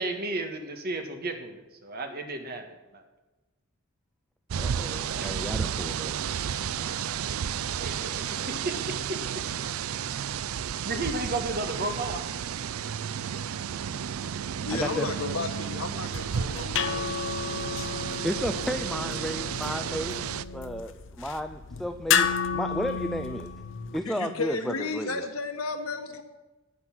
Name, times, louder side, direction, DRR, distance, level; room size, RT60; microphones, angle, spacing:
voice 1, 0.0-2.6 2.9-3.0 5.2-5.3 7.8-8.3 10.8-12.2, right 2 dB, 45° right, 5 dB, 1.7 m, -33 dB
sound 1, 4.5-20.4, right 8 dB, 85° right, 0.4 m, -32 dB
voice 2, 4.6-6.2 14.7-15.1 18.2-20.2 20.5-23.5 23.9-25.3, equal, ahead, 6 dB, 0.4 m, -33 dB
voice 3, 14.6-17.7 24.0-26.2, left 4 dB, 85° left, 6 dB, 1.5 m, -33 dB
sound 2, 15.9-24.0, left 6 dB, 60° left, 0.8 m, -32 dB
9.7 x 9.6 x 6.1 m, 1.1 s
head